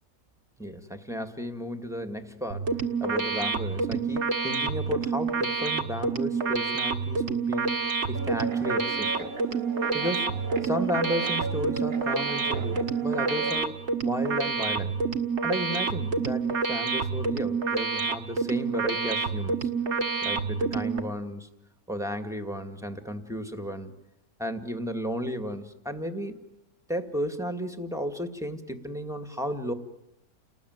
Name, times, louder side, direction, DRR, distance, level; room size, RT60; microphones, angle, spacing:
voice 1, 0.6-2.7 3.0-9.3 9.9-14.9 15.4-19.7 20.2-21.5 21.9-23.9 24.4-26.4 26.9-29.7, equal, ahead, 6 dB, 1.8 m, -34 dB
sound 1, 2.5-21.0, right 4 dB, 50° right, 1.8 m, -28 dB
Guitar, 8.1-13.6, right 4 dB, 70° right, 2.1 m, -36 dB
30.0 x 20.0 x 9.4 m, 0.90 s
omnidirectional pair, 1.5 m